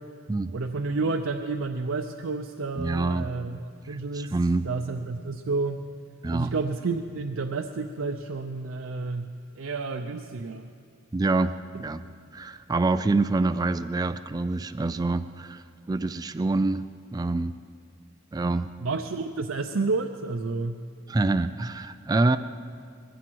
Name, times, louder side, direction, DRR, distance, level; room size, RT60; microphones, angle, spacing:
voice 1, 0.5-4.3 4.6-5.8 6.3-10.7 18.8-20.8, right 3 dB, 90° right, 6 dB, 0.6 m, -30 dB
voice 2, 2.8-3.3 3.9-4.7 6.2-6.5 11.1-12.0 12.3-16.8 17.1-17.5 18.3-18.7 21.1-22.4, right 3 dB, 20° right, 10 dB, 0.3 m, -26 dB
20.0 x 15.5 x 4.6 m, 2.2 s
head